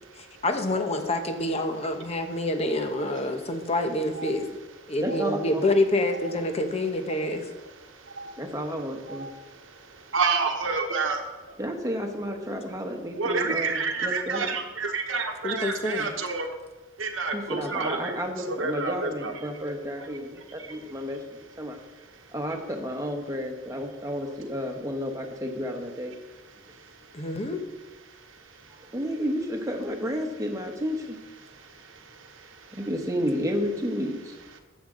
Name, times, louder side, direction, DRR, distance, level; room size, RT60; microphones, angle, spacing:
voice 1, 0.1-4.5 4.9-7.5 15.4-16.1 27.1-27.7, left 1 dB, 35° left, 6 dB, 1.0 m, -27 dB
voice 2, 5.0-5.4 8.4-9.3 11.6-14.6 17.3-21.2 21.6-21.8 22.3-26.2 28.9-31.2 32.7-34.3, equal, 15° right, 3 dB, 1.2 m, -31 dB
voice 3, 10.1-11.2 13.2-16.5 17.0-18.2 18.5-19.3 19.6-19.7 20.0-20.1, right 4 dB, 85° right, 3 dB, 1.1 m, -28 dB
13.5 x 7.3 x 3.9 m, 1.2 s
head